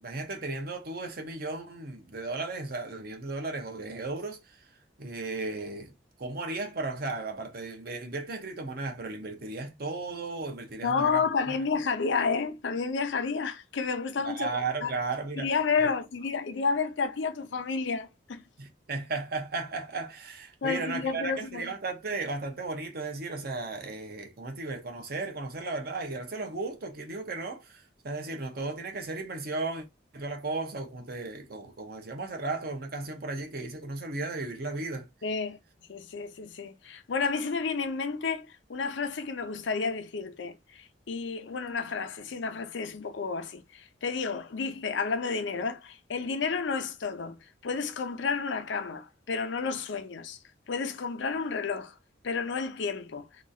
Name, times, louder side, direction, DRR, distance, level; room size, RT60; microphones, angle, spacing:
voice 1, 0.0-4.6 5.0-5.9 6.2-11.5 14.2-15.5 15.8-15.9 18.6-29.8 30.1-35.1, right 3 dB, 55° right, 0.7 m, -35 dB
voice 2, 10.8-14.5 14.8-14.9 15.4-18.4 20.6-21.7 35.2-35.6 35.9-50.4 50.7-51.9 52.2-53.3, left 5 dB, 85° left, 0.5 m, -31 dB
2.9 x 2.3 x 2.5 m
head